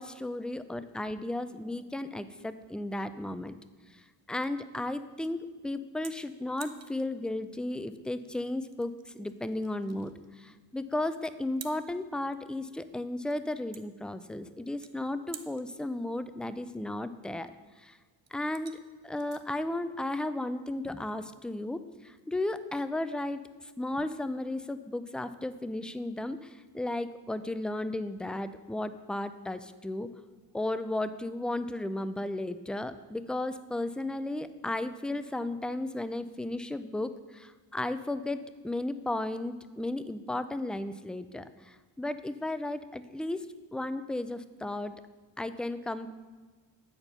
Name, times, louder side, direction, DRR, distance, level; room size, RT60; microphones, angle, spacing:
voice 1, 0.0-3.5 3.9-17.5 17.8-18.0 18.3-18.8 19.0-30.1 30.5-43.5 43.7-44.9 45.4-46.1, left 1 dB, ahead, 12 dB, 0.3 m, -34 dB
sound 1, 3.9-21.0, right 6 dB, 35° right, 0.7 m, -54 dB
8.8 x 4.4 x 6.6 m, 1.3 s
cardioid pair, 80°, 43 cm